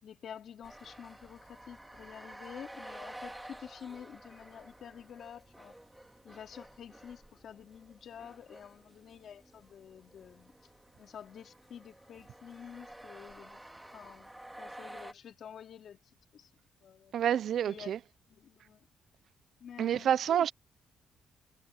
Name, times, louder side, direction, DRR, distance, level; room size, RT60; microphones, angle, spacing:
voice 1, 0.0-5.8 6.2-10.5 11.0-13.6 13.9-16.0 16.3-16.5 16.8-17.2 17.6-17.9 18.3-18.9 19.6-20.5, left 8 dB, 60° left, 3.6 m, -49 dB
sound 1, 0.6-15.1, right 1 dB, 5° right, 2.3 m, -51 dB
voice 2, 17.1-18.0 19.8-20.5, right 9 dB, 65° right, 0.6 m, -28 dB
cardioid pair, 90°, 0 cm